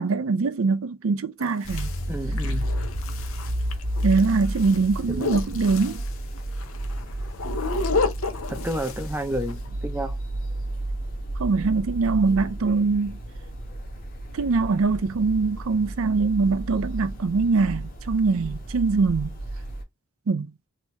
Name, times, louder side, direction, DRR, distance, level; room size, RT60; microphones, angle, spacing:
voice 1, 0.0-1.9 4.0-6.0 11.4-13.2 14.3-19.3 20.3-20.5, right 4 dB, 70° right, 0.5 m, -23 dB
sound 1, 1.4-9.7, left 4 dB, 70° left, 0.8 m, -32 dB
sound 2, 1.6-19.8, right 1 dB, 40° left, 1.7 m, -32 dB
voice 2, 2.1-2.7 5.1-5.4 8.5-10.2, right 1 dB, 10° right, 0.6 m, -31 dB
4.3 x 2.9 x 3.2 m
head